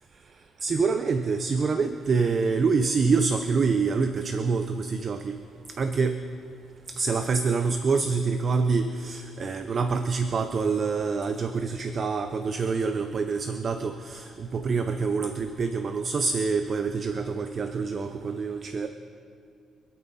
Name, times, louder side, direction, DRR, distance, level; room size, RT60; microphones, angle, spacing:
voice 1, 0.6-5.4 5.8-6.2 7.0-18.9, right 4 dB, 45° right, 8 dB, 0.7 m, -26 dB
26.0 x 8.7 x 4.2 m, 2.5 s
cardioid pair, 90°, 0 cm